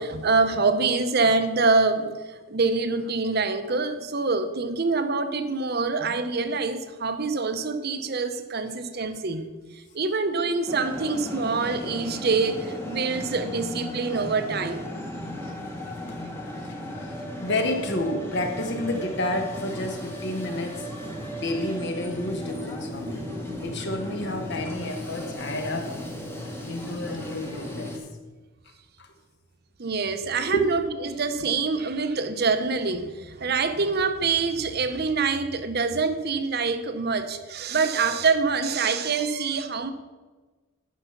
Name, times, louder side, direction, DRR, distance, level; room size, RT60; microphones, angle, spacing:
voice 1, 0.0-9.5 9.7-14.8 29.8-39.9, right 4 dB, 45° right, 10 dB, 0.7 m, -25 dB
sound 1, 10.7-28.0, equal, 10° left, 1.1 m, -36 dB
voice 2, 17.4-20.8 21.3-23.2 23.6-26.0 26.7-28.0 29.0-29.1 30.5-30.7, left 1 dB, 50° left, 5 dB, 1.2 m, -30 dB
10.5 x 5.6 x 5.8 m, 1.3 s
head